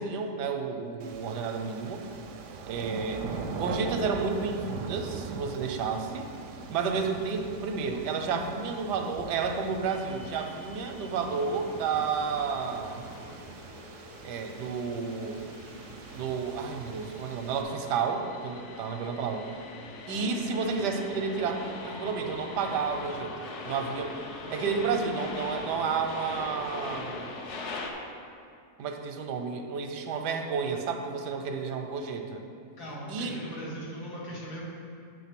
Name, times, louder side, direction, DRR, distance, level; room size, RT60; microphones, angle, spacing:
voice 1, 0.0-2.0 2.6-3.2 3.5-6.3 6.7-13.0 14.2-15.4 16.1-19.5 20.1-24.2 24.5-27.3 28.8-32.4 33.1-33.4, right 5 dB, 90° right, 5 dB, 1.3 m, -31 dB
sound 1, 1.0-17.6, right 5 dB, 70° right, 0.7 m, -42 dB
sound 2, 9.9-27.9, left 3 dB, 60° left, 0.8 m, -42 dB
voice 2, 32.8-34.6, equal, 75° left, -7 dB, 2.3 m, -40 dB
8.4 x 3.8 x 5.8 m, 2.3 s
omnidirectional pair, 1.7 m